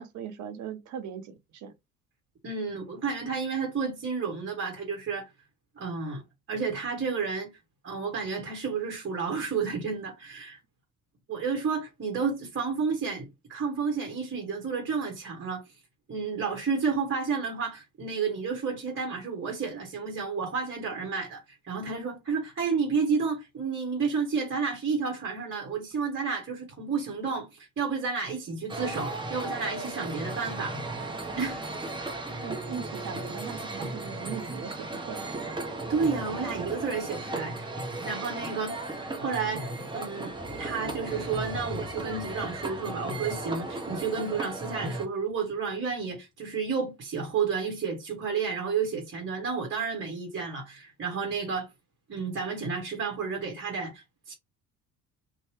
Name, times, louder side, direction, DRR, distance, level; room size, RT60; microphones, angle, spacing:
voice 1, 0.0-1.7 32.4-35.4, right 8 dB, 45° right, 0.7 m, -39 dB
voice 2, 2.4-5.3 5.8-6.2 6.5-7.5 7.8-10.6 11.3-15.6 16.1-30.8 31.3-31.7 35.9-37.7 38.0-38.8 39.1-51.7 52.1-54.3, right 5 dB, 30° right, 1.1 m, -31 dB
sound 1, 28.7-45.1, right 2 dB, 10° right, 0.8 m, -36 dB
sound 2, 40.3-45.0 45.3-45.4, left 3 dB, 20° left, 0.9 m, -46 dB
2.8 x 2.2 x 3.1 m
figure-of-eight pair, 55°, 42 cm